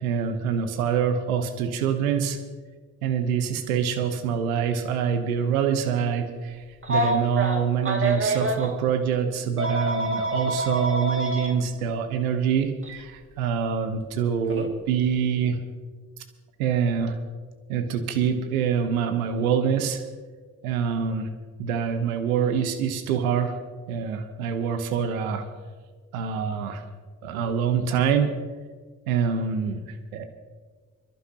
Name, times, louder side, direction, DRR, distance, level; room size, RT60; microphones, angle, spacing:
voice 1, 0.0-2.4 3.0-6.6 6.9-15.6 16.6-17.2 17.7-20.0 20.6-21.3 21.6-23.5 23.9-25.4 26.1-26.8 27.2-28.3 29.1-29.8 30.1-30.2, right 7 dB, 85° right, 7 dB, 1.0 m, -25 dB
Telephone, 6.8-8.7 9.6-11.5 12.8-13.0 14.5-14.7, right 1 dB, 30° right, 2.3 m, -26 dB
27.0 x 11.5 x 2.9 m, 1.5 s
hypercardioid pair, 40°, 42 cm